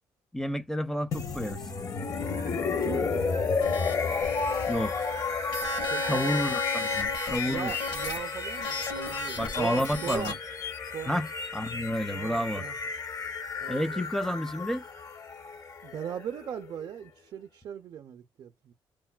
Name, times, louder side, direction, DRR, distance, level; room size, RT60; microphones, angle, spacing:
voice 1, 0.3-1.6 4.7-4.9 6.1-7.7 9.4-10.3 11.1-12.7 13.7-14.8, equal, 5° left, 0.4 m, -30 dB
sound 1, 1.1-17.0, left 4 dB, 45° left, 0.8 m, -32 dB
voice 2, 2.8-3.3 5.8-6.4 7.4-10.4 10.9-11.2 12.1-12.8 13.6-14.0 15.8-18.7, right 9 dB, 60° right, 0.4 m, -39 dB
sound 2, 3.6-10.3, left 4 dB, 60° left, 1.3 m, -36 dB
3.8 x 2.1 x 2.2 m
cardioid pair, 100°, 8 cm